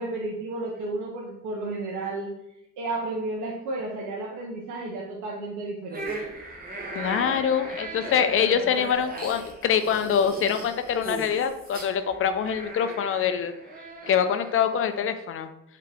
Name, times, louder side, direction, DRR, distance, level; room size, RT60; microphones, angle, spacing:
voice 1, 0.0-2.3 2.8-6.3, right 2 dB, 75° right, -3 dB, 0.7 m, -32 dB
sound 1, 5.9-15.1, right 2 dB, 30° right, 1.0 m, -38 dB
voice 2, 6.9-13.5 14.1-15.5, left 8 dB, 45° left, 10 dB, 0.4 m, -24 dB
3.5 x 2.8 x 3.3 m, 0.83 s
cardioid pair, 90°, 30 cm